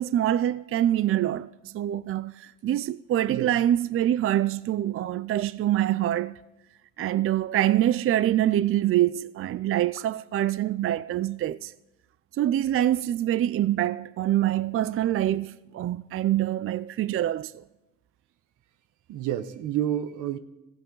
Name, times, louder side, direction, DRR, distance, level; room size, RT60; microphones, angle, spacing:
voice 1, 0.0-6.4 7.0-11.7 12.4-17.6, right 12 dB, 45° right, 0.4 m, -25 dB
voice 2, 19.1-20.4, right 11 dB, 90° right, 0.9 m, -29 dB
16.5 x 15.0 x 3.9 m
cardioid pair, 90°, 30 cm